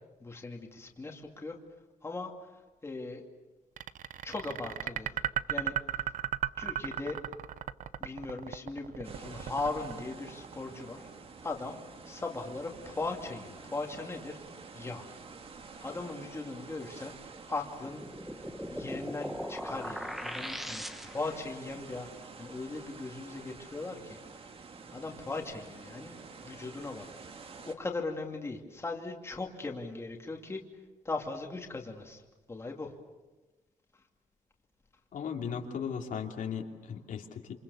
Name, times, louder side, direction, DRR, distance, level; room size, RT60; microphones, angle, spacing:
voice 1, 0.2-1.6 2.0-3.2 4.2-5.2 5.5-5.7 6.6-7.2 8.0-11.0 11.4-11.8 12.0-14.4 14.7-15.1 15.8-17.1 17.5-18.0 18.3-24.2 24.9-26.1 26.4-27.1 27.7-30.6 31.0-32.2 32.5-32.9, left 3 dB, 20° left, 1 dB, 2.5 m, -38 dB
sound 1, 3.8-10.9, right 11 dB, 70° right, 0.8 m, -35 dB
sound 2, 9.0-27.7, right 4 dB, 45° right, 2.1 m, -49 dB
sound 3, 17.8-21.4, equal, ahead, 1.4 m, -39 dB
voice 2, 35.1-37.5, left 7 dB, 75° left, 2 dB, 3.0 m, -37 dB
28.0 x 28.0 x 7.0 m, 1.2 s
wide cardioid pair, 175°, 14 cm